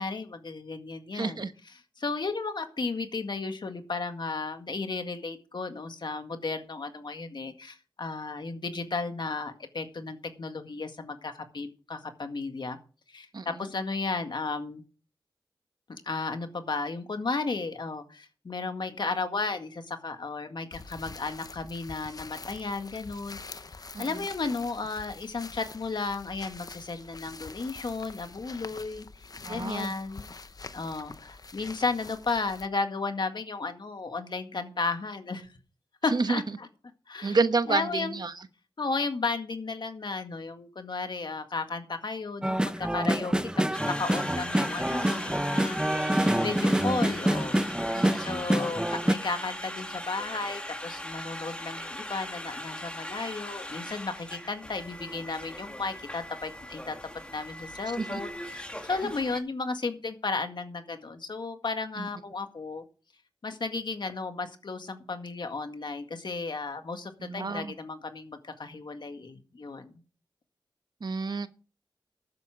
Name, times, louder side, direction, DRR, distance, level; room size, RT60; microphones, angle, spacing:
voice 1, 0.0-1.4 2.0-12.8 13.1-14.8 15.9-23.6 24.0-30.4 30.7-35.5 36.0-36.7 37.1-37.4 37.7-38.2 38.8-45.8 46.4-47.6 48.2-57.0 57.3-62.8 63.4-69.9, left 3 dB, 65° left, 1.9 m, -34 dB
voice 2, 1.1-1.5 13.3-13.5 23.9-24.1 29.4-29.9 36.1-36.4 37.2-38.3 47.9-48.3 58.0-58.2 62.0-62.1 67.2-67.7 71.0-71.5, right 4 dB, 55° right, 1.1 m, -29 dB
sound 1, 20.7-32.7, left 3 dB, 50° left, 0.8 m, -45 dB
sound 2, 42.4-49.1, right 1 dB, 10° right, 0.9 m, -27 dB
Conversation, 43.7-59.4, left 1 dB, 15° left, 2.3 m, -39 dB
12.5 x 9.5 x 4.9 m
cardioid pair, 55°, 8 cm